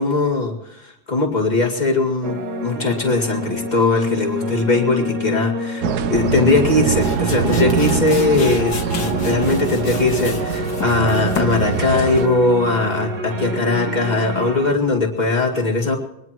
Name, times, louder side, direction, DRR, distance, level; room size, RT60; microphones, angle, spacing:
voice 1, 0.0-5.8 6.1-16.0, left 3 dB, 25° left, 0 dB, 2.3 m, -20 dB
sound 1, 2.2-14.7, equal, 50° right, 1.6 m, -27 dB
sound 2, 5.8-12.3, right 8 dB, 80° right, 1.3 m, -24 dB
sound 3, 6.6-12.4, left 6 dB, 90° left, 1.9 m, -33 dB
22.5 x 19.0 x 3.0 m, 0.88 s
omnidirectional pair, 1.7 m